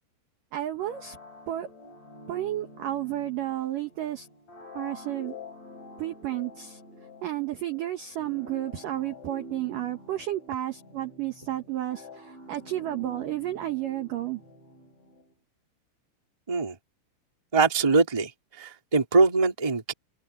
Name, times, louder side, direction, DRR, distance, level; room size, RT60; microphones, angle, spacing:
voice 1, 0.5-1.2 1.5-1.7 2.3-4.3 4.7-5.3 6.0-6.8 7.2-12.1 12.5-14.4, right 13 dB, 75° right, 1.9 m, -32 dB
sound 1, 0.8-15.3, left 1 dB, 35° left, 8.7 m, -47 dB
voice 2, 17.5-18.3 18.6-19.9, right 4 dB, 15° right, 1.3 m, -22 dB
omnidirectional pair, 5.7 m